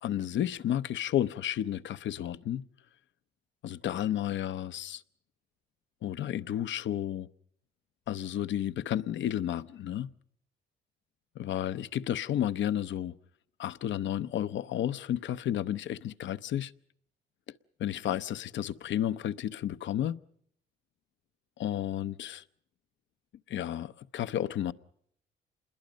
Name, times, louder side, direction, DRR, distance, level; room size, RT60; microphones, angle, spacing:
voice 1, 0.0-2.6 3.6-5.0 6.0-7.3 8.1-10.1 11.3-13.2 13.6-16.7 17.8-20.2 21.6-22.4 23.5-24.7, left 11 dB, 70° left, 0.8 m, -32 dB
27.5 x 21.0 x 5.2 m
cardioid pair, 90°, 20 cm